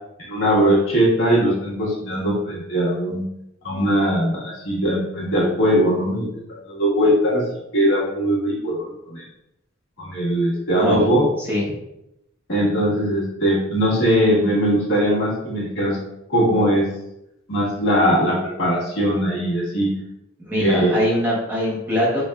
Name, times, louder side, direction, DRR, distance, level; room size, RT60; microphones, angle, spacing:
voice 1, 0.3-3.2 3.6-7.4 7.7-9.2 10.0-11.3 12.5-16.0 16.3-16.9 17.5-19.9 20.6-20.9, equal, 80° left, -6 dB, 1.4 m, -20 dB
voice 2, 20.4-22.2, equal, 10° right, -6 dB, 0.9 m, -22 dB
5.2 x 2.5 x 2.2 m, 0.84 s
head